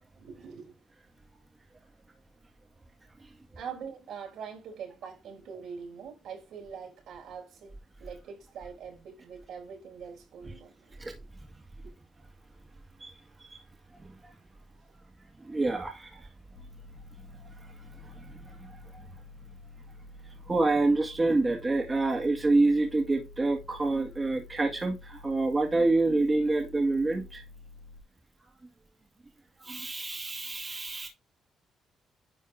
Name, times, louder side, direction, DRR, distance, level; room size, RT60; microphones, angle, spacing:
voice 1, 0.2-0.8 3.5-11.3 11.8-12.0, right 6 dB, 80° right, 4.2 m, -44 dB
voice 2, 15.4-16.2 18.0-19.1 20.5-27.4 29.6-31.1, right 2 dB, 20° right, 2.1 m, -27 dB
sound 1, 16.5-28.0, left 3 dB, 60° left, 2.0 m, -50 dB
10.5 x 4.2 x 3.6 m
cardioid pair, 90°, 0 cm